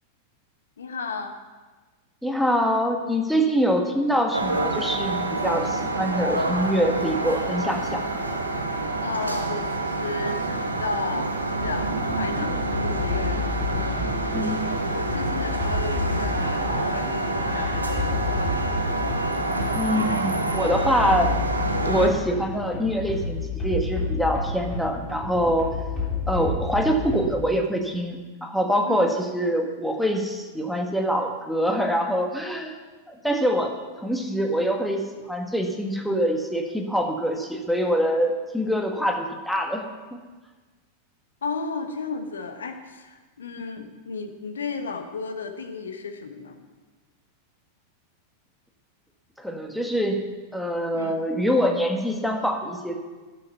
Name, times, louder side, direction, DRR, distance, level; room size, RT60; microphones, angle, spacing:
voice 1, 0.8-1.3 9.0-14.0 14.9-18.6 28.9-29.1 41.4-46.6 50.9-51.2, left 4 dB, 70° left, 6 dB, 1.3 m, -34 dB
voice 2, 2.2-8.2 14.3-14.6 19.7-21.3 21.8-25.7 26.3-32.7 33.1-35.0 35.2-40.2 43.8-43.9 49.4-50.2 50.5-53.0, equal, ahead, 3 dB, 1.6 m, -25 dB
sound 1, 4.3-22.1, right 2 dB, 80° right, 1.3 m, -27 dB
sound 2, 11.6-27.5, left 3 dB, 25° left, 3.5 m, -30 dB
11.5 x 7.7 x 6.9 m, 1.3 s
figure-of-eight pair, 90°, 0 cm